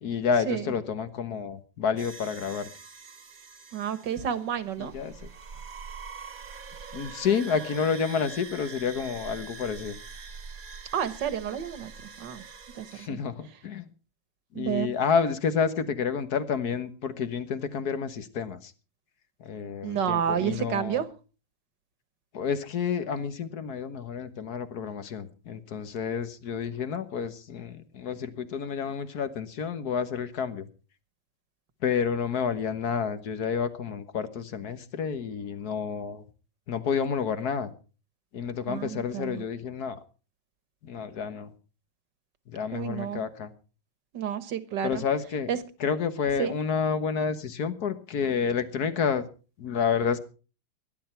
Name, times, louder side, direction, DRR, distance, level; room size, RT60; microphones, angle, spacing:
voice 1, 0.0-2.7 4.8-5.1 6.9-10.0 12.9-13.9 14.6-18.7 19.4-21.0 22.3-30.7 31.8-36.2 36.7-37.7 38.3-40.0 40.8-41.5 42.5-43.5 44.8-45.5 45.8-49.2 49.6-50.2, left 6 dB, 55° left, 11 dB, 1.8 m, -29 dB
sound 1, 2.0-13.1, right 5 dB, 50° right, 1.7 m, -44 dB
voice 2, 3.7-4.9 10.9-11.9 12.2-12.4 12.8-13.2 14.5-14.9 19.8-21.1 38.7-39.5 42.7-43.2 44.1-45.0 45.5-45.6 46.4-46.6, right 9 dB, 65° right, 12 dB, 1.9 m, -30 dB
19.5 x 11.5 x 4.5 m, 0.36 s
omnidirectional pair, 2.1 m